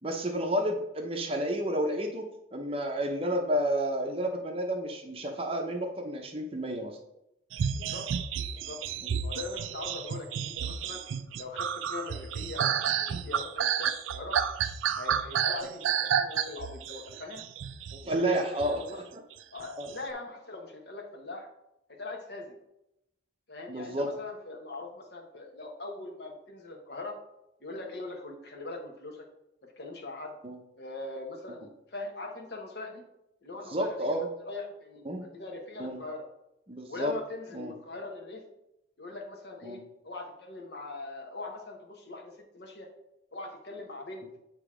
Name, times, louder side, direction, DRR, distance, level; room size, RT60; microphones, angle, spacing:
voice 1, 0.0-7.0 9.0-9.1 18.0-19.2 19.8-19.9 23.7-24.1 30.4-30.6 31.5-31.6 33.7-34.3 35.0-35.2 35.8-36.0 36.7-37.1 37.5-37.7 39.6-39.8, right 1 dB, 30° right, 3 dB, 0.7 m, -31 dB
sound 1, 7.5-18.8 19.6-19.9, right 8 dB, 90° right, 0.4 m, -31 dB
voice 2, 7.7-8.1 8.5-8.8 9.2-11.0 11.4-14.4 15.0-17.4 18.0-19.0 19.5-21.5 21.9-22.6 23.5-27.2 27.6-29.3 29.6-30.4 30.8-33.0 33.4-34.2 34.5-36.2 36.9-38.4 39.0-42.9 43.3-44.3, left 2 dB, 55° left, 1 dB, 1.1 m, -41 dB
7.9 x 2.9 x 4.8 m, 0.86 s
head